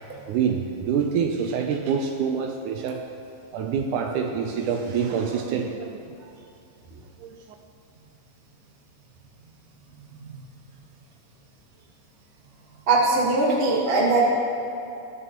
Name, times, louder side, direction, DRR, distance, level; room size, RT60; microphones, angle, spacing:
voice 1, 0.3-3.0 3.5-6.3 7.2-7.4, right 6 dB, 80° right, 4 dB, 1.9 m, -26 dB
voice 2, 12.9-14.3, right 3 dB, 55° right, -4 dB, 0.6 m, -20 dB
20.0 x 6.9 x 3.0 m, 2.8 s
omnidirectional pair, 3.9 m